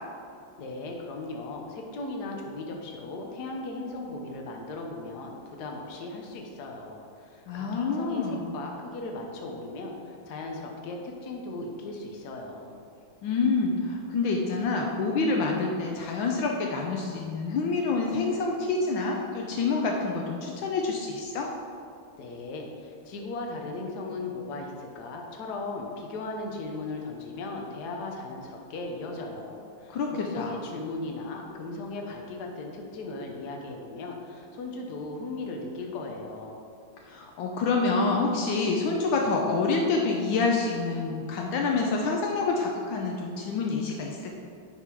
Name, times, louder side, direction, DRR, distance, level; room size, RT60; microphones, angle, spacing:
voice 1, 0.6-12.8 22.2-36.6, left 2 dB, 60° left, 1 dB, 1.4 m, -37 dB
voice 2, 7.5-8.6 13.2-21.5 29.9-30.5 37.0-44.4, left 4 dB, 75° left, 0 dB, 1.4 m, -27 dB
9.9 x 3.7 x 4.7 m, 2.4 s
omnidirectional pair, 2.2 m